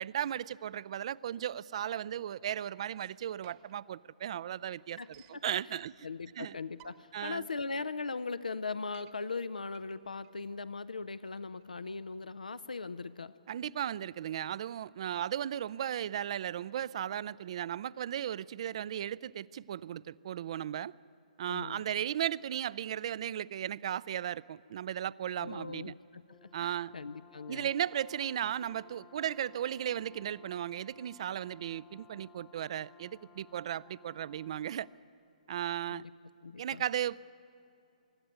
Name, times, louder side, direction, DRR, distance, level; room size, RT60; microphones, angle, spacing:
voice 1, 0.0-5.0 5.3-5.9 6.4-6.6 7.1-7.5 13.5-20.9 21.4-25.9 26.5-26.9 27.5-34.9 35.5-36.0 36.6-37.2, right 10 dB, 50° right, 0.4 m, -36 dB
sound 1, 3.0-3.9 4.3-4.4 4.5-5.5 6.2-6.3 6.6-7.3 7.8-7.9 8.1-8.2 8.6-9.2 9.7-12.6, right 14 dB, 30° right, 1.1 m, -61 dB
voice 2, 6.0-13.3 21.5-21.8 25.4-27.7 35.9-36.1 36.4-36.8, left 4 dB, 80° left, 0.6 m, -39 dB
Brass instrument, 26.3-35.0, left 6 dB, 20° left, 0.8 m, -59 dB
24.5 x 12.0 x 9.2 m
figure-of-eight pair, 130°, 4 cm